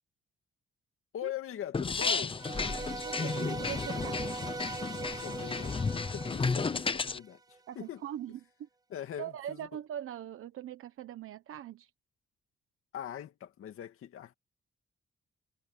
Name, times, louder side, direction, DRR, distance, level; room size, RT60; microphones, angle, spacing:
voice 1, 1.1-2.3 4.9-8.0 8.9-9.7 12.9-14.3, left 11 dB, 90° left, 2.3 m, -42 dB
sound 1, 1.7-7.2, left 4 dB, 25° left, 0.8 m, -33 dB
voice 2, 2.0-4.2 7.7-8.7 9.2-11.9, right 11 dB, 90° right, 1.0 m, -42 dB
sound 2, 2.3-7.6, right 4 dB, 20° right, 0.4 m, -41 dB
wide cardioid pair, 150°, 21 cm